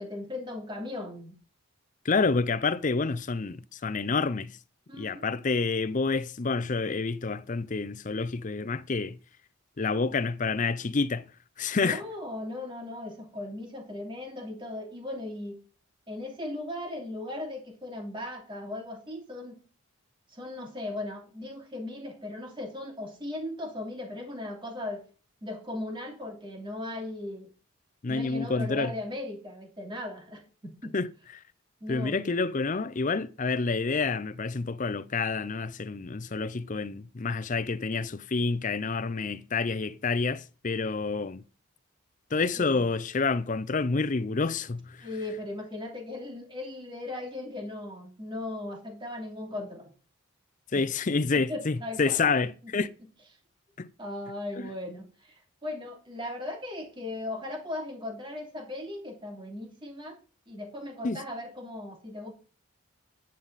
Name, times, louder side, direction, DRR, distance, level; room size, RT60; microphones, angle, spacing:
voice 1, 0.0-1.3 4.9-5.3 10.0-10.1 11.7-15.6 16.1-19.6 20.3-25.0 25.4-27.5 28.1-30.9 31.8-32.2 42.6-42.9 45.0-49.9 50.7-50.8 51.3-52.7 54.0-60.2 60.5-62.3, left 1 dB, 25° right, 2.9 m, -38 dB
voice 2, 2.0-4.6 5.0-9.2 9.8-11.3 11.6-12.0 28.0-28.9 30.9-31.1 31.4-31.5 31.9-41.4 42.3-45.1 50.7-52.9 53.8-53.9 54.6-54.7 61.0-61.2, left 4 dB, 35° left, 0.5 m, -28 dB
10.5 x 9.0 x 4.1 m
head